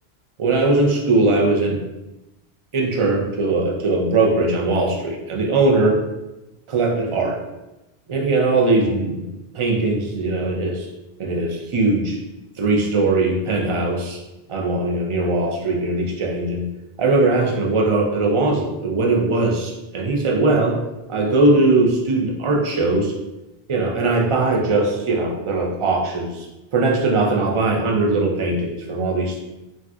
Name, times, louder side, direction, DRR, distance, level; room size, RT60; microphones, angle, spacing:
voice 1, 0.4-1.8 2.7-6.0 6.7-7.4 8.1-9.3 9.5-10.9 11.2-12.2 12.6-14.2 14.5-16.7 17.0-20.8 21.1-23.1 23.7-26.5 26.7-29.4, right 2 dB, 50° right, -1 dB, 0.3 m, -20 dB
3.9 x 2.2 x 2.3 m, 1.0 s
omnidirectional pair, 1.1 m